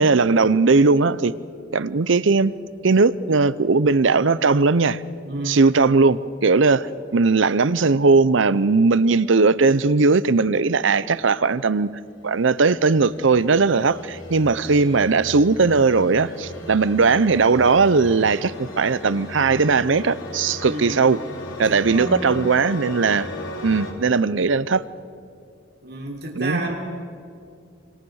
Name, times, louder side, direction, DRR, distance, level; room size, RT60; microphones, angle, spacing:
voice 1, 0.0-1.3 1.7-2.5 2.8-5.0 5.5-11.9 12.2-21.2 21.6-23.3 23.6-24.8 26.4-26.6, right 4 dB, 80° right, 17 dB, 0.7 m, -18 dB
voice 2, 5.2-5.7 20.6-21.1 21.7-22.1 25.8-26.8, right 2 dB, 55° right, 1 dB, 3.7 m, -31 dB
sound 1, 12.4-23.9, left 2 dB, 85° left, 4.4 m, -37 dB
28.0 x 25.5 x 6.4 m, 2.5 s
head